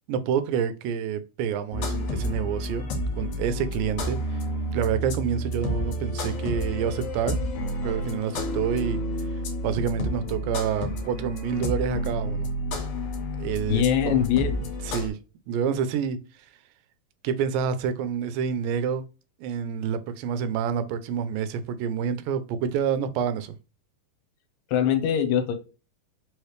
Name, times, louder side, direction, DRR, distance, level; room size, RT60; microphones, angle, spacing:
voice 1, 0.1-2.9 3.2-4.2 4.7-7.4 7.8-9.0 9.6-12.5 13.4-14.2 14.9-15.2 15.5-16.2 17.2-19.0 19.4-23.6, right 7 dB, 85° right, 2.2 m, -28 dB
sound 1, 1.7-15.1, equal, 65° left, 2.4 m, -30 dB
voice 2, 13.7-14.6 24.7-25.5, left 9 dB, 85° left, 2.3 m, -22 dB
5.2 x 3.2 x 3.1 m
omnidirectional pair, 3.9 m